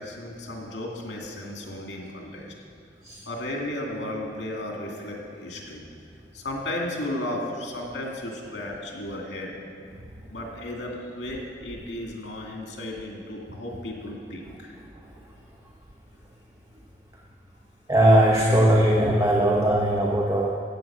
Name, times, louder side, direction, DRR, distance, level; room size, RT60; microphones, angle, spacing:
voice 1, 0.0-2.4 3.3-5.8 6.3-9.6 10.3-14.7, left 1 dB, 85° left, -1 dB, 2.5 m, -34 dB
voice 2, 17.9-20.5, right 1 dB, 20° right, -1 dB, 0.9 m, -19 dB
14.0 x 8.8 x 5.9 m, 2.4 s
head